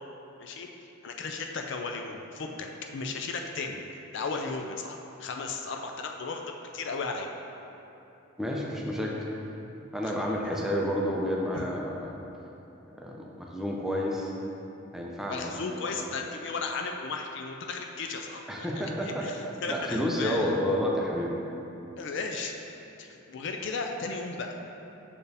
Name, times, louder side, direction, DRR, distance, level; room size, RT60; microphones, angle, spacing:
voice 1, 1.0-3.8 4.1-7.3 10.0-10.1 11.5-11.6 15.3-20.5 22.0-22.6 23.0-24.6, left 4 dB, 60° left, 3 dB, 0.4 m, -35 dB
voice 2, 8.4-9.2 9.9-12.2 12.9-14.3 14.9-15.5 15.9-16.0 18.5-19.3 19.7-21.4, equal, ahead, -3 dB, 0.5 m, -30 dB
6.7 x 4.3 x 3.4 m, 2.9 s
head